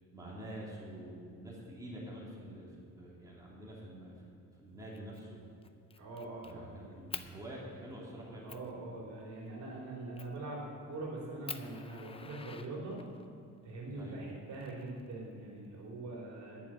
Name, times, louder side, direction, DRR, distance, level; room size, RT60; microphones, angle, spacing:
voice 1, 0.1-4.1 4.6-5.4 6.4-8.5 13.9-14.3, right 1 dB, 10° right, -5 dB, 3.1 m, -47 dB
Fire, 4.9-5.2 5.6-6.5 7.1-7.3 7.9-8.0 8.5-8.7 10.2-10.4 10.9-11.0 11.5-13.2 14.3-15.3, left 5 dB, 20° left, 0.5 m, -46 dB
voice 2, 6.0-6.8 8.4-13.0 13.6-16.6, right 2 dB, 65° right, -3 dB, 3.3 m, -43 dB
10.0 x 7.5 x 8.7 m, 2.4 s
cardioid pair, 110°, 31 cm